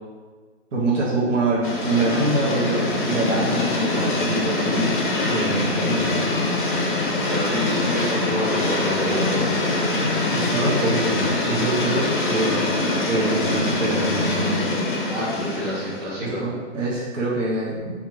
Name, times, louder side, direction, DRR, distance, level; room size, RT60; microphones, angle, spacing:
voice 1, 0.7-6.2 10.3-12.6 13.1-14.6 16.2-18.0, right 2 dB, 80° right, -5 dB, 0.9 m, -25 dB
sound 1, 1.6-16.1, left 2 dB, 45° left, 0.5 m, -24 dB
voice 2, 7.1-9.4 15.1-16.4, equal, 30° right, -10 dB, 1.3 m, -28 dB
3.6 x 2.4 x 3.0 m, 1.5 s
hypercardioid pair, 175°, 37 cm